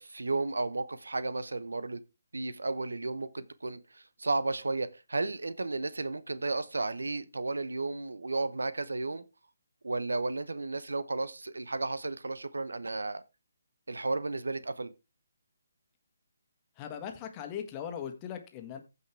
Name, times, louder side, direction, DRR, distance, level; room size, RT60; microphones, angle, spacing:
voice 1, 0.0-2.0 2.3-9.2 9.8-13.2 13.9-14.9, right 3 dB, 80° right, 0.9 m, -33 dB
voice 2, 16.8-18.8, left 8 dB, 25° left, 1.7 m, -39 dB
15.0 x 5.5 x 3.4 m
figure-of-eight pair, 150°, 0 cm